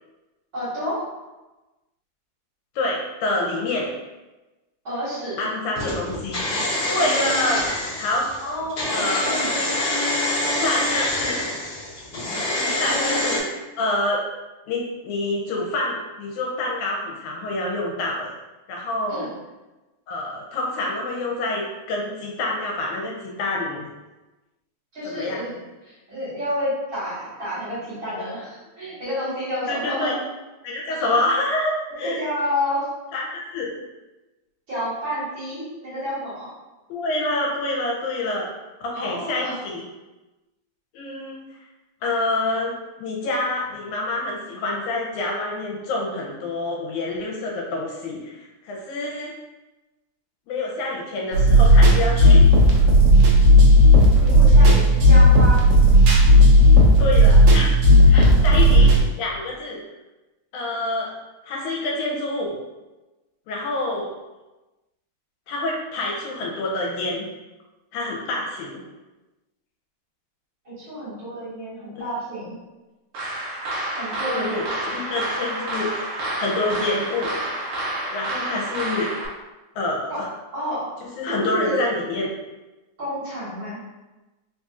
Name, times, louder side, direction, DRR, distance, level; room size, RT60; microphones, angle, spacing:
voice 1, 0.5-1.0 4.8-5.5 8.4-9.5 12.5-13.3 19.1-19.3 24.9-25.6 25.9-30.2 31.0-31.2 32.0-32.8 34.7-36.5 38.9-39.6 54.2-55.6 58.1-58.4 58.8-58.9 70.7-72.5 73.9-74.6 78.5-78.6 80.1-80.2 80.5-80.9 81.3-81.9 83.0-83.8, equal, 45° right, -12 dB, 2.1 m, -30 dB
voice 2, 2.8-3.9 5.4-6.4 6.9-8.3 8.9-9.4 10.6-11.5 12.5-13.4 13.8-14.2 14.7-18.3 18.7-19.3 20.1-23.9 25.0-25.4 29.7-30.2 30.6-32.2 33.1-33.7 36.9-38.5 38.8-39.8 40.9-41.4 42.0-49.3 50.5-52.4 57.0-57.8 58.1-58.9 59.2-59.8 60.5-61.1 61.4-62.5 63.5-64.1 65.5-67.3 67.9-68.8 74.3-77.3 78.1-79.1 79.8-80.3 81.0-82.3, left 2 dB, 80° left, -2 dB, 2.0 m, -27 dB
sound 1, 5.8-13.4, left 1 dB, 55° left, 1.1 m, -25 dB
sound 2, 51.3-59.0, equal, 90° right, 1.3 m, -13 dB
sound 3, 73.1-79.3, right 1 dB, 70° right, 2.1 m, -29 dB
4.6 x 2.7 x 2.4 m, 1.1 s
omnidirectional pair, 3.5 m